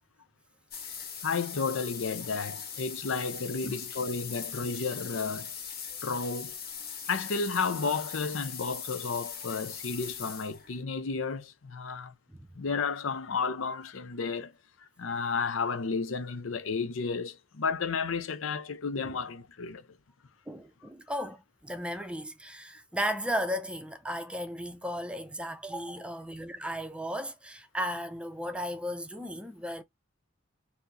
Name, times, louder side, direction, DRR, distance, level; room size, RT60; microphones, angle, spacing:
sound 1, 0.7-10.8, left 7 dB, 50° left, 1.3 m, -40 dB
voice 1, 1.2-5.5 6.0-6.6 7.1-12.1 12.6-14.5 15.0-19.8, left 4 dB, 70° left, 0.6 m, -32 dB
voice 2, 20.5-29.8, equal, 5° right, 0.6 m, -35 dB
4.3 x 2.7 x 3.9 m
head